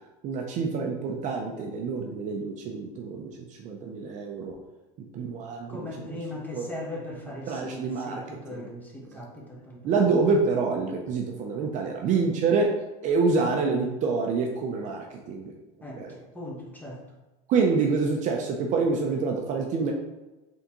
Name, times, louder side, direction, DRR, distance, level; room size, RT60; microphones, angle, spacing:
voice 1, 0.2-3.3 3.6-4.6 5.1-5.9 6.5-6.7 7.5-8.2 8.5-8.7 9.1-9.2 9.8-12.8 13.0-15.5 16.0-16.2 17.5-19.9, right 4 dB, 40° right, 2 dB, 0.5 m, -26 dB
voice 2, 5.7-10.0 15.8-17.0, left 1 dB, 10° left, -3 dB, 0.9 m, -39 dB
3.8 x 3.5 x 2.9 m, 1.1 s
supercardioid pair, 135°, 19 cm